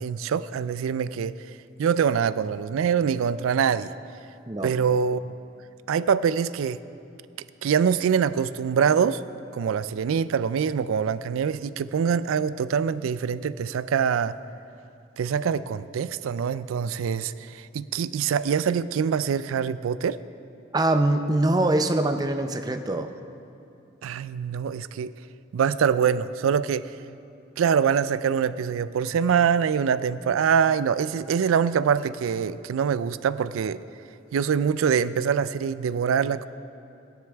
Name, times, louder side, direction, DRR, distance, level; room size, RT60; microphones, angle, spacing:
voice 1, 0.0-1.3 1.8-3.9 4.6-5.2 5.9-6.8 7.6-9.2 9.5-14.3 15.2-20.2 24.0-25.1 25.5-26.9 27.6-33.8 34.3-36.5, right 7 dB, 90° right, 16 dB, 0.3 m, -24 dB
voice 2, 20.7-23.1, right 2 dB, 20° right, 7 dB, 0.4 m, -23 dB
16.0 x 10.5 x 3.4 m, 2.7 s
head